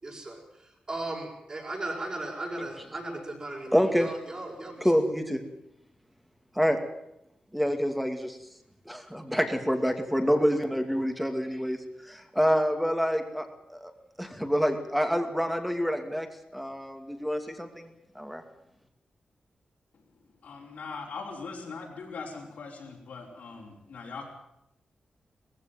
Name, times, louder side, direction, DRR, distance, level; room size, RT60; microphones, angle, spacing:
voice 1, 0.0-0.4 0.9-4.9, right 2 dB, 35° right, -3 dB, 6.3 m, -36 dB
voice 2, 3.7-4.1 4.8-5.4 6.5-6.8 7.5-8.4 8.9-13.9 14.2-16.3 16.5-18.4, equal, ahead, 6 dB, 2.5 m, -27 dB
voice 3, 20.4-24.3, left 4 dB, 85° left, -3 dB, 5.1 m, -41 dB
19.5 x 15.5 x 9.3 m, 0.83 s
wide cardioid pair, 115°, 2 cm